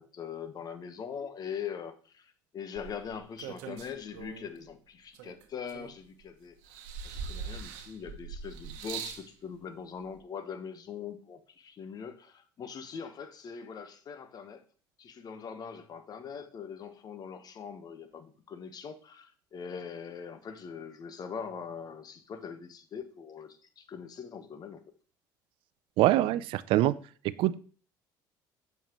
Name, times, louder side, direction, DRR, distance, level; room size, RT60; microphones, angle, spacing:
voice 1, 0.0-6.5 7.0-14.6 15.0-24.8, left 7 dB, 45° left, 1.1 m, -42 dB
sound 1, 2.8-4.6 5.1-6.2 6.6-9.3 10.2-10.3, right 6 dB, 85° right, 0.9 m, -42 dB
voice 2, 26.0-27.0 27.4-27.6, right 15 dB, 70° right, 0.4 m, -24 dB
7.2 x 5.5 x 3.0 m
supercardioid pair, 85°, 9 cm